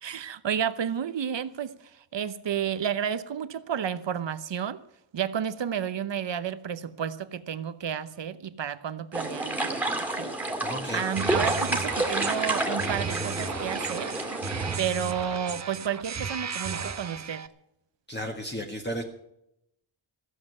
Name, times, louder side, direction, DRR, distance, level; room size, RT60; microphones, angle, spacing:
voice 1, 0.0-4.8 5.1-10.3 10.9-14.2 14.8-17.5, right 8 dB, 60° right, 0.9 m, -31 dB
sound 1, 9.1-14.8, right 2 dB, 5° right, 2.2 m, -29 dB
voice 2, 10.6-11.0 18.1-19.0, equal, 20° left, 1.6 m, -33 dB
sound 2, 11.0-17.5, right 5 dB, 35° right, 0.7 m, -34 dB
15.5 x 7.7 x 9.3 m
wide cardioid pair, 155°, 49 cm